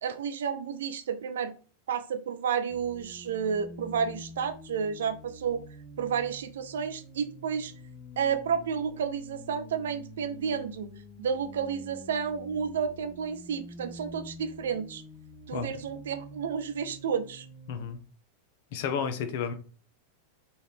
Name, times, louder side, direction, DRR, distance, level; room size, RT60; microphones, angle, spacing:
voice 1, 0.0-1.5 1.9-5.6 6.0-7.7 8.2-10.9 11.2-15.0 15.5-17.5, right 7 dB, 60° right, 0.4 m, -31 dB
sound 1, 2.7-18.0, left 1 dB, 15° left, 0.8 m, -47 dB
voice 2, 17.7-18.0 18.7-19.5, left 6 dB, 50° left, 0.6 m, -31 dB
4.0 x 2.4 x 3.3 m
figure-of-eight pair, 90°, 0 cm